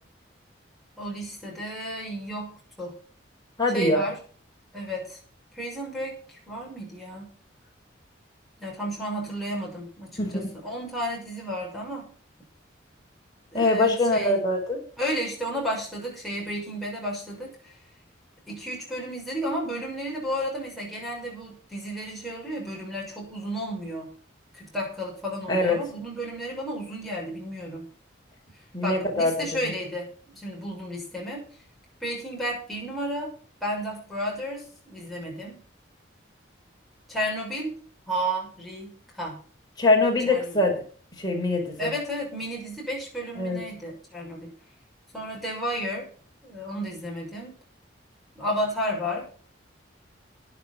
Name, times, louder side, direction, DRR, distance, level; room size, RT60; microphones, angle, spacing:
voice 1, 1.0-2.9 3.7-4.2 4.7-5.2 5.6-7.3 8.6-12.1 13.5-14.4 15.0-17.5 18.5-24.1 24.5-27.9 28.8-31.5 32.0-33.3 33.6-35.6 37.1-37.8 38.1-39.4 40.3-40.5 41.8-44.5 45.1-46.1 46.4-47.6 48.4-49.3, equal, ahead, -4 dB, 6.2 m, -32 dB
voice 2, 3.6-4.1 10.2-10.5 13.5-14.8 25.5-25.8 28.7-29.7 39.8-40.8 41.2-41.9 43.4-43.6, left 2 dB, 20° left, -1 dB, 5.0 m, -23 dB
12.5 x 10.5 x 5.7 m, 0.43 s
head